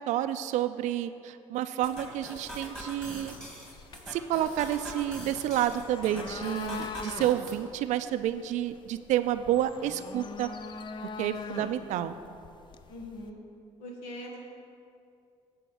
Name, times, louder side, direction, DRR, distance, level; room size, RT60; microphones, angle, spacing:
voice 1, 0.0-3.3 4.1-10.5 11.2-12.2, right 12 dB, 70° right, 11 dB, 0.4 m, -29 dB
sound 1, 1.8-7.6, equal, 5° left, 1.8 m, -43 dB
sound 2, 2.5-13.3, left 4 dB, 40° left, 0.4 m, -43 dB
voice 2, 6.0-6.6 11.5-11.9 12.9-13.4 13.8-14.4, left 1 dB, 85° left, 0 dB, 1.4 m, -43 dB
8.4 x 4.5 x 7.0 m, 2.5 s
cardioid pair, 85°, 13 cm